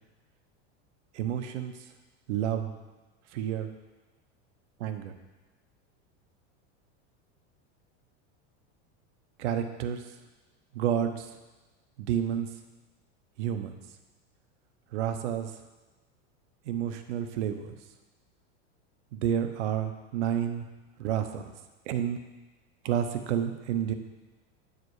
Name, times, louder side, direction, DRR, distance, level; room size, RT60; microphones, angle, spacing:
voice 1, 1.1-1.7 2.3-2.7 3.3-3.7 4.8-5.1 9.4-10.1 10.7-11.4 12.0-12.5 13.4-13.8 14.9-15.5 16.6-17.8 19.1-20.7 21.0-21.5 21.9-22.2 22.8-23.9, right 9 dB, 90° right, 8 dB, 0.9 m, -30 dB
8.3 x 5.0 x 4.8 m, 1.2 s
supercardioid pair, 160°, 34 cm